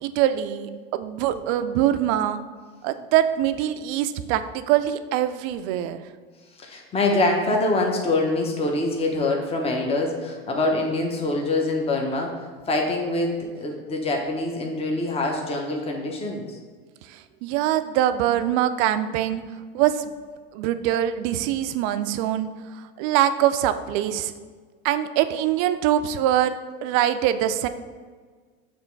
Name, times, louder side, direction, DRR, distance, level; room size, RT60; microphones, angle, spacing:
voice 1, 0.0-2.4 2.8-6.0 17.4-19.4 19.7-20.1 20.5-22.5 23.0-24.3 24.8-26.5 26.8-27.7, right 11 dB, 50° right, 11 dB, 0.5 m, -23 dB
voice 2, 6.6-12.3 12.7-16.6, left 2 dB, 20° left, 1 dB, 0.9 m, -24 dB
6.7 x 3.1 x 4.5 m, 1.5 s
supercardioid pair, 110°, 31 cm